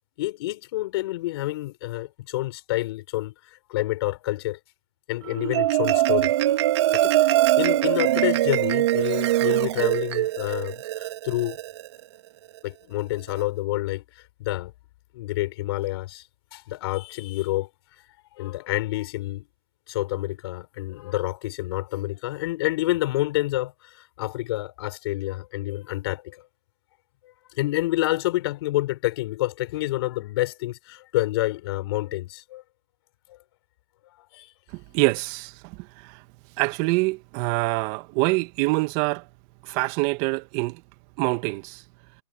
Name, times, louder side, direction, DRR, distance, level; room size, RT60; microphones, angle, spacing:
voice 1, 0.2-3.3 3.7-4.6 5.1-6.3 6.9-11.6 12.6-14.0 14.4-14.7 15.1-16.2 16.5-17.7 18.4-19.4 19.9-26.4 27.5-32.6 34.3-34.5, left 17 dB, 45° left, 4.9 m, -28 dB
Marimba xylophone, 5.3-11.9, right 14 dB, 50° right, 2.5 m, -22 dB
voice 2, 34.7-35.8 36.0-36.2 36.6-39.2 39.6-40.8 41.2-41.8, right 25 dB, 30° right, 2.0 m, -25 dB
hypercardioid pair, 145°, 19 cm